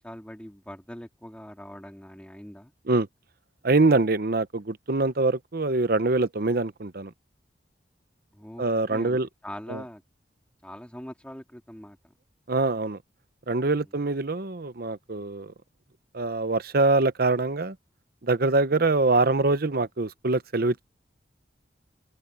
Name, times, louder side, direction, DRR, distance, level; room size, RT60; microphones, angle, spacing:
voice 1, 0.0-2.7 8.3-9.2 9.4-10.0 10.6-12.0 18.7-18.9, equal, 5° left, 2.6 m, -42 dB
voice 2, 3.6-7.1 8.6-9.3 9.7-9.8 12.5-13.0 13.5-15.5 16.1-17.8 18.2-20.8, right 3 dB, 55° right, 0.9 m, -24 dB
open air
head